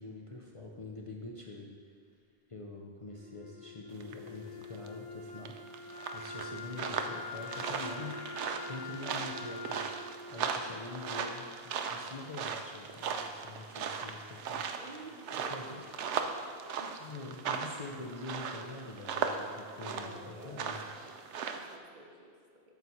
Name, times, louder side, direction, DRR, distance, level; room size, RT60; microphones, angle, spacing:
voice 1, 0.0-1.7 2.5-5.6 6.1-8.2 8.7-9.9 10.3-14.7 15.5-15.8 16.8-20.9, left 2 dB, 40° left, -1 dB, 0.6 m, -45 dB
Wind instrument woodwind instrument, 3.0-12.1, left 3 dB, 75° left, 2.2 m, -45 dB
sound 1, 4.0-4.3 4.6-4.9 5.4-21.8, right 6 dB, 85° right, 0.9 m, -38 dB
voice 2, 6.5-7.0 14.8-15.9 19.8-20.8 21.3-22.3, right 2 dB, 45° right, 1 dB, 1.1 m, -50 dB
12.0 x 4.5 x 4.2 m, 2.2 s
omnidirectional pair, 1.2 m